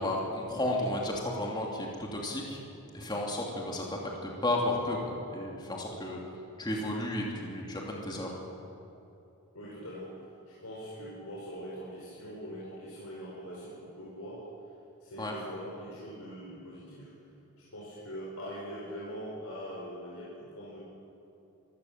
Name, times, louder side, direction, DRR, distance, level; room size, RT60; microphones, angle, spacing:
voice 1, 0.0-2.6 2.9-6.2 6.6-8.3 15.2-15.3, left 1 dB, 20° left, -2 dB, 2.9 m, -33 dB
voice 2, 9.5-14.5 15.0-17.1 17.6-20.8, equal, 85° left, -6 dB, 4.9 m, -42 dB
24.0 x 16.0 x 7.5 m, 2.9 s
head